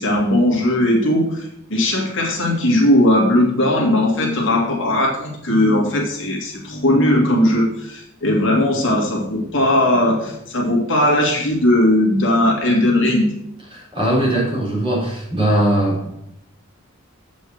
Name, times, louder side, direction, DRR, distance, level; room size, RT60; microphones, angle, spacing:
voice 1, 0.0-13.3, left 1 dB, 60° left, -1 dB, 2.1 m, -18 dB
voice 2, 13.7-16.1, right 1 dB, 25° right, -6 dB, 3.9 m, -20 dB
7.9 x 5.3 x 6.3 m, 0.80 s
head